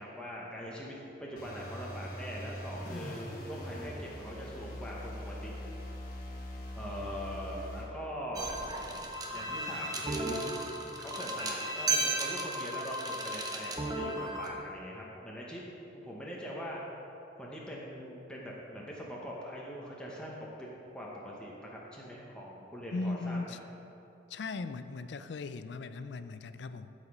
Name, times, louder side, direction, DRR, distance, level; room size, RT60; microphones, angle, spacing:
voice 1, 0.0-5.5 6.8-8.5 9.3-10.6 11.0-15.6 15.9-16.8 17.4-20.7 20.9-23.6, equal, 5° left, -4 dB, 1.0 m, -42 dB
sound 1, 1.4-7.9, left 1 dB, 50° left, 1.3 m, -42 dB
sound 2, 8.4-14.5, right 2 dB, 20° right, 0.8 m, -35 dB
voice 2, 22.9-23.6 24.3-26.9, left 3 dB, 65° left, 11 dB, 0.4 m, -38 dB
12.0 x 5.0 x 5.3 m, 3.0 s
head